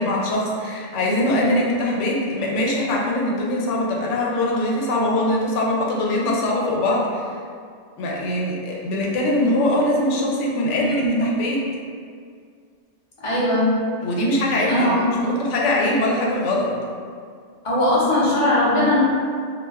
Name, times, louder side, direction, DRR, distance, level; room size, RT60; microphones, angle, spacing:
voice 1, 0.0-7.3 8.0-11.6 14.0-15.0 15.2-16.7, left 1 dB, 85° left, -3 dB, 0.9 m, -22 dB
voice 2, 1.3-1.8 10.8-11.3 13.2-13.8 14.7-15.3 17.6-19.0, left 1 dB, 35° left, -8 dB, 0.6 m, -20 dB
2.4 x 2.1 x 3.3 m, 2.1 s
omnidirectional pair, 1.2 m